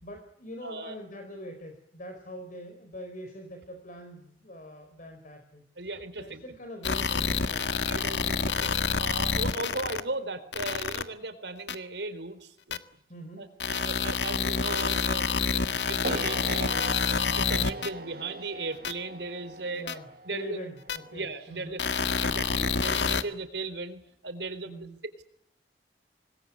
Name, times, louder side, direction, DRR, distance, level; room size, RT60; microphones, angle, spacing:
voice 1, 0.0-5.6 6.2-7.7 8.1-8.3 13.1-13.5 19.7-21.8 24.6-25.0, equal, 50° left, 6 dB, 4.2 m, -43 dB
voice 2, 0.6-1.0 5.8-6.4 7.7-12.8 13.4-16.8 17.1-19.8 20.3-20.6 21.1-24.7, right 3 dB, 85° right, 11 dB, 3.9 m, -37 dB
sound 1, 6.8-10.0 10.5-11.0 11.7-11.8 12.7-12.8 13.6-17.9 18.8-18.9 19.9-20.0 20.9-21.0 21.8-23.2, left 5 dB, 90° left, 1.7 m, -28 dB
sound 2, 16.0-22.2, right 2 dB, 60° right, 1.4 m, -41 dB
26.0 x 20.5 x 9.6 m, 0.71 s
head